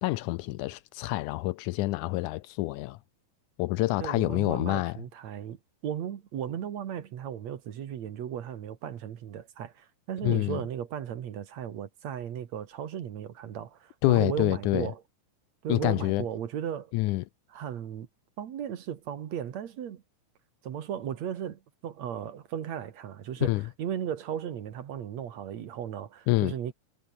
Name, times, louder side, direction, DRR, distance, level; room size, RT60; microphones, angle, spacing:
voice 1, 0.0-3.0 3.6-5.0 10.2-10.6 14.0-14.9 15.7-16.2 16.9-17.2 23.4-23.6 26.3-26.6, left 19 dB, 80° left, 1.9 m, -27 dB
voice 2, 4.0-5.6 5.8-15.0 15.6-16.9 17.5-18.1 18.4-20.0 20.6-26.7, right 9 dB, 60° right, 2.7 m, -36 dB
omnidirectional pair, 3.8 m